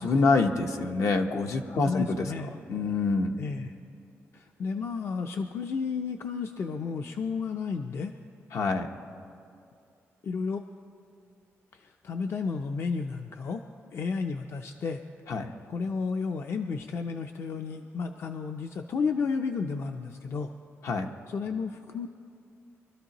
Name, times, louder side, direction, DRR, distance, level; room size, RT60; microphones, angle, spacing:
voice 1, 0.0-2.3 2.7-3.3 8.5-8.9 15.3-15.5 20.8-21.1, left 3 dB, 75° left, 4 dB, 0.9 m, -26 dB
voice 2, 1.7-2.5 3.4-3.7 4.3-8.1 10.2-10.6 11.7-13.6 13.9-15.0 15.7-20.5 21.3-22.1, left 5 dB, 55° left, 5 dB, 0.5 m, -32 dB
24.0 x 13.0 x 3.0 m, 2.5 s
wide cardioid pair, 130°, 5 cm